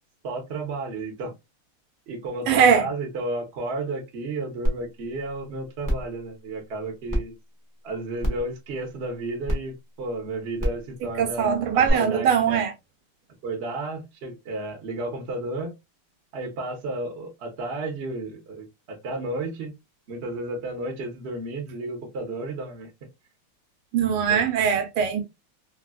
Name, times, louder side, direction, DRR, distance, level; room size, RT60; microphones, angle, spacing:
voice 1, 0.2-1.3 2.1-7.3 7.8-12.6 13.4-15.7 16.3-19.7 20.1-22.9 24.3-24.4, right 2 dB, 55° right, 0.7 m, -32 dB
voice 2, 2.5-2.9 11.2-12.7 23.9-25.2, right 7 dB, 80° right, 1.6 m, -21 dB
sound 1, 4.6-4.7 5.2-5.3 5.8-6.1 7.1-7.2 8.2-8.5 9.4-9.6 10.6-10.8 11.9-12.0, equal, 25° right, 0.4 m, -24 dB
3.8 x 2.1 x 2.3 m
omnidirectional pair, 2.4 m